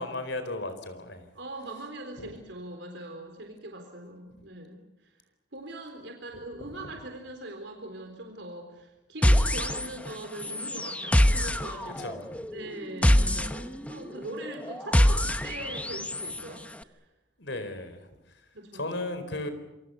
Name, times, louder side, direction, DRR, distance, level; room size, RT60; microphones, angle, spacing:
voice 1, 0.0-1.3 2.2-2.3 12.0-12.3 17.4-18.0 18.7-19.5, left 2 dB, 70° left, 10 dB, 4.3 m, -35 dB
voice 2, 1.3-5.1 5.5-12.2 12.5-17.1 18.5-18.9, right 1 dB, 70° right, 4 dB, 3.9 m, -41 dB
sound 1, 9.2-10.1 10.4-16.4, equal, 5° left, 0.9 m, -25 dB
28.0 x 24.0 x 7.0 m, 0.99 s
head